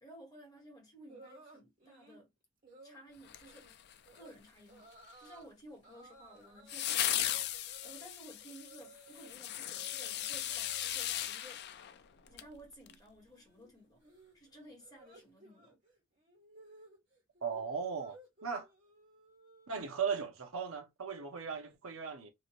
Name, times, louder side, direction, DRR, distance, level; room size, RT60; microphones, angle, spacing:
voice 1, 0.0-2.3 2.8-3.8 4.1-4.9 5.2-7.3 7.6-11.6 12.3-14.0 14.3-15.8, right 1 dB, 20° left, 1.5 m, -55 dB
sound 1, 1.1-2.2 2.6-3.0 3.4-3.7 4.0-4.3 4.7-5.5 5.8-9.3 9.6-10.9 11.2-11.6 11.9-20.1, right 2 dB, 40° right, 1.8 m, -59 dB
sound 2, 3.3-4.2 6.7-12.5 12.9-13.0, left 12 dB, 50° left, 0.3 m, -37 dB
voice 2, 17.4-18.2 18.4-18.7 19.7-22.3, right 6 dB, 70° right, 0.8 m, -37 dB
2.9 x 2.6 x 2.9 m
head